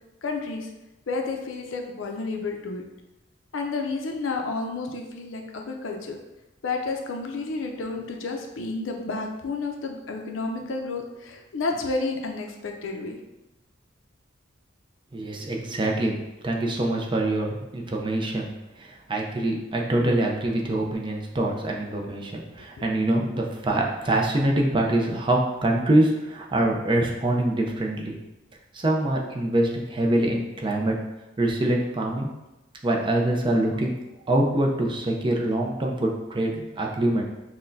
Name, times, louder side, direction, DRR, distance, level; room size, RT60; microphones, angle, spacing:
voice 1, 0.2-0.7 1.1-2.8 3.5-6.2 6.6-13.2 22.8-22.9, left 3 dB, 80° left, 2 dB, 0.5 m, -31 dB
voice 2, 15.1-16.2 16.4-28.2 28.7-31.0 31.4-32.3 32.8-33.9 34.3-37.2, right 1 dB, 25° right, 0 dB, 0.5 m, -24 dB
5.7 x 2.2 x 2.6 m, 1.0 s
head